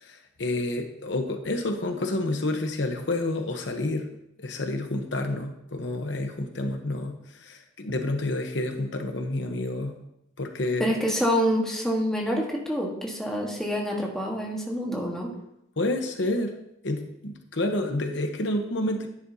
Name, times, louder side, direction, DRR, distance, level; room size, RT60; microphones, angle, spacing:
voice 1, 0.0-4.1 4.4-10.0 10.4-10.9 15.8-16.5 16.8-19.1, left 2 dB, 60° left, 4 dB, 1.0 m, -29 dB
voice 2, 10.8-15.3, equal, 5° left, -2 dB, 1.4 m, -27 dB
11.5 x 10.0 x 2.8 m, 0.82 s
head